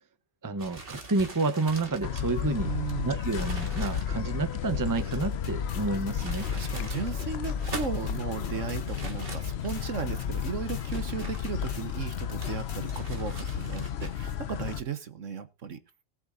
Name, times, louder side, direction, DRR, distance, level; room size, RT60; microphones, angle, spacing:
voice 1, 0.4-2.7 3.0-6.5, right 3 dB, 15° right, 0.8 m, -29 dB
sound 1, 0.6-5.3 6.0-7.1 7.5-8.2 8.8-10.0 10.7-12.0 12.4-14.4, right 3 dB, 40° right, 2.0 m, -44 dB
sound 2, 2.0-14.8, left 8 dB, 55° left, 0.9 m, -33 dB
voice 2, 2.6-3.2 6.5-15.8, right 6 dB, 65° right, 1.5 m, -36 dB
sound 3, 5.2-13.2, left 3 dB, 40° left, 1.2 m, -46 dB
19.0 x 7.8 x 2.6 m
omnidirectional pair, 1.5 m